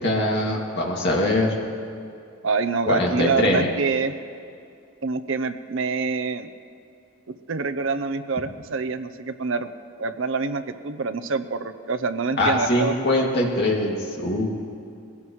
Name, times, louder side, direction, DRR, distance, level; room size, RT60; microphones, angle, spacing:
voice 1, 0.0-1.5 2.9-3.7 12.4-14.5, left 1 dB, 55° left, -2 dB, 2.2 m, -22 dB
voice 2, 2.4-4.1 5.0-6.5 7.3-9.7 10.0-12.9 13.2-13.3, right 4 dB, 65° right, 11 dB, 0.7 m, -26 dB
21.0 x 17.0 x 3.1 m, 2.5 s
head